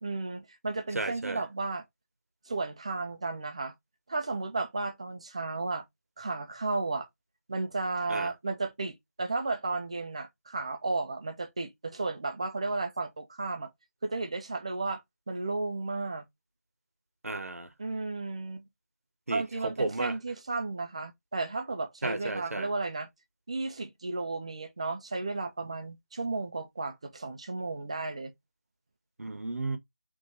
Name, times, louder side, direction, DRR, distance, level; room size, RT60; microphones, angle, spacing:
voice 1, 0.0-1.8 2.5-3.7 4.1-5.8 6.2-7.1 7.5-13.7 14.0-15.0 15.3-16.3 17.8-18.7 19.3-23.1 23.5-28.3, right 3 dB, 25° right, 0.4 m, -33 dB
voice 2, 0.9-1.4 8.1-8.3 17.2-17.7 19.3-20.1 22.0-22.7 29.2-29.8, right 2 dB, 70° right, 0.7 m, -33 dB
4.0 x 3.0 x 2.5 m
figure-of-eight pair, 165°, 8 cm